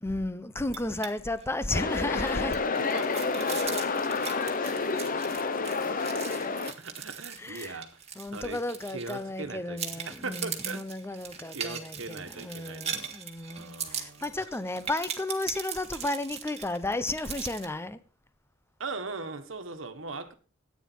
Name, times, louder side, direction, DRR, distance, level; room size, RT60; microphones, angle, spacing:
voice 1, 0.0-2.6 7.4-7.8 8.2-18.0, left 2 dB, 15° left, 0.8 m, -33 dB
sound 1, 0.6-1.1 1.4-1.5 1.9-9.4 9.8-17.7, right 7 dB, 30° right, 1.9 m, -39 dB
sound 2, 1.7-6.7, left 4 dB, 45° left, 0.9 m, -29 dB
voice 2, 2.9-3.9 6.8-8.0 8.3-8.6 8.9-13.1 13.5-14.4 18.8-20.3, right 3 dB, 70° right, 1.5 m, -40 dB
13.5 x 9.4 x 4.6 m
head